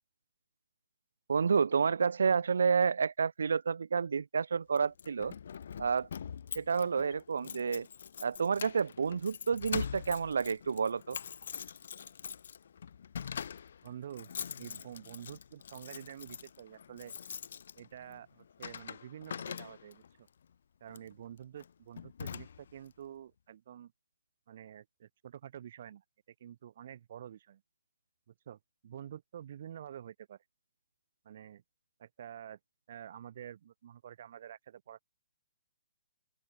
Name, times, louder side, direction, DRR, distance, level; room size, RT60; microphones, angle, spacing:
voice 1, 1.3-5.3 5.8-6.1 6.5-7.9 8.2-11.2, right 5 dB, 75° right, 1.6 m, -29 dB
Keys jangling, 4.8-20.1 20.9-21.1 21.6-21.7 22.0-22.9, left 7 dB, 55° left, 3.7 m, -44 dB
voice 2, 13.8-17.1 17.8-20.3 20.8-23.9 24.5-26.0 26.4-27.6 28.3-30.4 31.2-31.6 32.0-32.6 32.9-35.0, right 10 dB, 40° right, 2.9 m, -48 dB
open air
hypercardioid pair, 170°, 0 cm